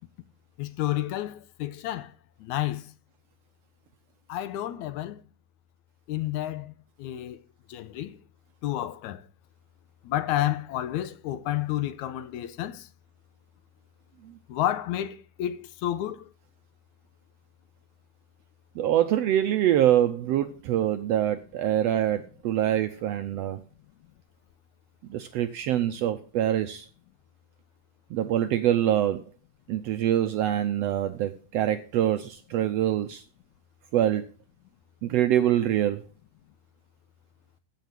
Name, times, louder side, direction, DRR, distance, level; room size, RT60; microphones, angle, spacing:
voice 1, 0.6-2.1 2.4-2.8 4.3-5.2 6.1-6.7 7.0-7.4 7.7-8.2 8.6-9.2 10.1-12.9 14.5-16.3, left 13 dB, 75° left, 2.0 m, -30 dB
voice 2, 18.7-23.6 25.1-26.9 28.1-29.2 29.7-33.2 33.9-34.3 35.0-36.0, right 11 dB, 80° right, 1.5 m, -25 dB
14.5 x 5.9 x 5.9 m
omnidirectional pair, 3.6 m